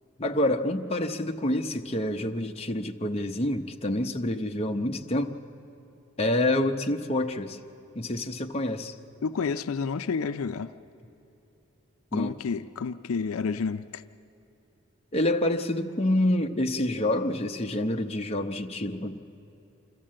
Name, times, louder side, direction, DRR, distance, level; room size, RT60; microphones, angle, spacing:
voice 1, 0.2-5.3 6.2-7.6 7.9-8.9 12.1-12.3 15.1-19.2, left 1 dB, 30° left, 4 dB, 0.7 m, -27 dB
voice 2, 9.2-10.7 12.1-14.0, left 5 dB, 80° left, 11 dB, 0.5 m, -30 dB
26.0 x 14.0 x 7.5 m, 2.8 s
head